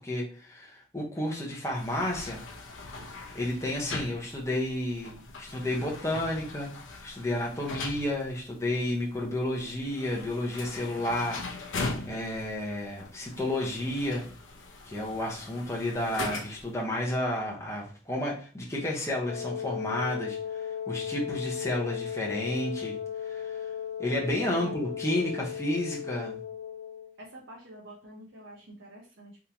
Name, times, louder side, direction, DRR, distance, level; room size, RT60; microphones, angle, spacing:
voice 1, 0.0-2.4 3.3-6.7 7.0-14.3 14.9-23.0 23.2-23.6 24.0-26.4, left 1 dB, 15° left, -2 dB, 0.8 m, -31 dB
sound 1, 1.7-16.8, left 3 dB, 85° left, 0.7 m, -41 dB
Wind instrument woodwind instrument, 19.3-27.1, left 8 dB, 50° left, 0.3 m, -36 dB
voice 2, 24.3-24.8 27.2-29.4, right 1 dB, 75° right, -3 dB, 0.8 m, -47 dB
3.6 x 2.7 x 2.9 m, 0.39 s
head